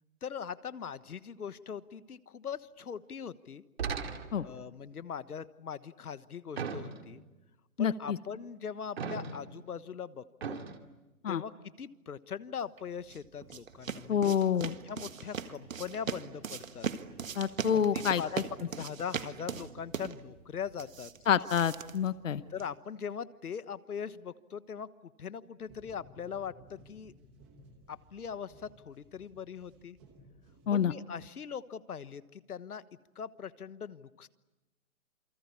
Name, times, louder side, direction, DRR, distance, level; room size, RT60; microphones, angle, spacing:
voice 1, 0.2-3.6 4.4-7.2 7.8-10.6 11.3-16.9 17.7-18.3 18.6-21.1 22.5-27.1 27.9-30.0 30.7-32.8 33.1-34.3, left 7 dB, 85° left, 14 dB, 1.4 m, -41 dB
sound 1, 3.8-4.6 6.6-7.3 9.0-9.6 10.4-10.8, right 5 dB, 45° right, 2.3 m, -37 dB
voice 2, 7.8-8.2 11.2-11.4 14.1-14.7 17.4-18.4 21.3-22.4 30.7-30.9, left 8 dB, 60° left, 14 dB, 1.0 m, -28 dB
sound 2, 12.8-22.8, right 6 dB, 60° right, 1.7 m, -40 dB
sound 3, 25.6-31.2, right 1 dB, 5° right, 1.0 m, -58 dB
28.5 x 24.0 x 8.5 m, 1.1 s
hypercardioid pair, 175°, 44 cm